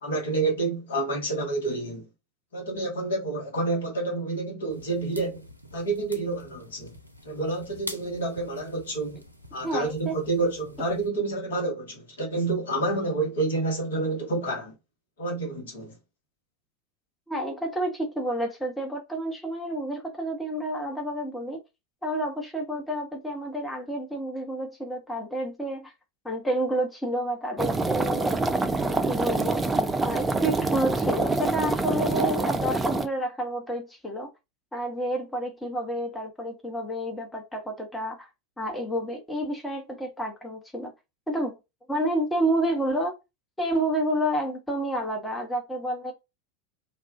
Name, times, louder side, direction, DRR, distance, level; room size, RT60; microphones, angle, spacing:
voice 1, 0.0-2.1 2.5-5.4 5.7-6.9 7.2-9.2 9.5-14.7 15.2-15.9, right 2 dB, 65° left, 1.0 m, -29 dB
sound 1, 4.7-11.1, equal, 90° right, 0.4 m, -46 dB
voice 2, 9.6-10.1 17.3-21.6 22.0-25.9 26.2-28.4 28.8-29.6 30.0-34.3 34.7-38.3 38.6-40.9 41.3-41.6 41.9-43.1 43.6-46.1, right 1 dB, 5° left, 0.8 m, -29 dB
sound 2, 27.6-33.1, right 3 dB, 15° right, 0.3 m, -26 dB
2.3 x 2.3 x 3.4 m
figure-of-eight pair, 85°, 0 cm